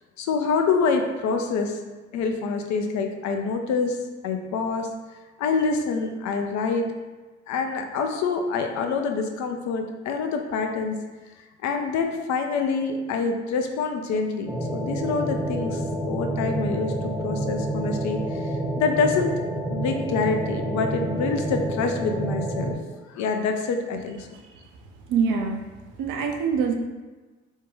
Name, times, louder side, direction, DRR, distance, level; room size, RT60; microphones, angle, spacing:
voice 1, 0.2-1.8 2.1-4.0 4.2-4.9 5.4-6.9 7.5-11.0 11.6-19.3 19.7-22.8 23.1-24.3, left 4 dB, 55° left, 4 dB, 0.5 m, -26 dB
sound 1, 14.5-22.7, right 1 dB, 5° right, 0.5 m, -28 dB
voice 2, 25.1-25.6 26.0-26.7, right 6 dB, 65° right, 3 dB, 0.5 m, -24 dB
2.6 x 2.2 x 3.0 m, 1.3 s
hypercardioid pair, 45°, 34 cm